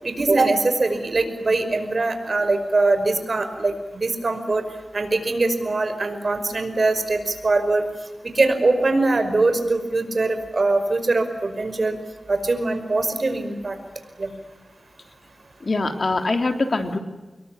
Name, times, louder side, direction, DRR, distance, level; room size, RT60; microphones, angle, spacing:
voice 1, 0.0-4.6 4.9-7.9 8.2-12.0 12.3-13.8 14.2-14.3, right 3 dB, 55° right, 8 dB, 5.4 m, -22 dB
voice 2, 15.6-17.0, left 3 dB, 60° left, 6 dB, 3.4 m, -23 dB
26.0 x 22.0 x 9.1 m, 1.2 s
wide cardioid pair, 60°, 0 cm